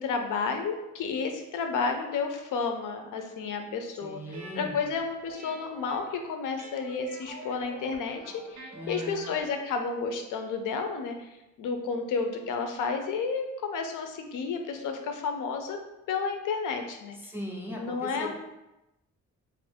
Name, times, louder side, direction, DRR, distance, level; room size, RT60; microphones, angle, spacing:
voice 1, 0.0-11.1 11.6-15.8 16.1-17.2 17.7-18.3, left 5 dB, 75° left, 5 dB, 0.5 m, -31 dB
voice 2, 4.0-4.8 8.7-9.3 17.2-18.3, left 1 dB, 5° right, -3 dB, 0.3 m, -38 dB
sound 1, 4.3-9.4, right 3 dB, 65° right, 0.5 m, -47 dB
2.5 x 2.5 x 3.5 m, 0.94 s
cardioid pair, 140°, 31 cm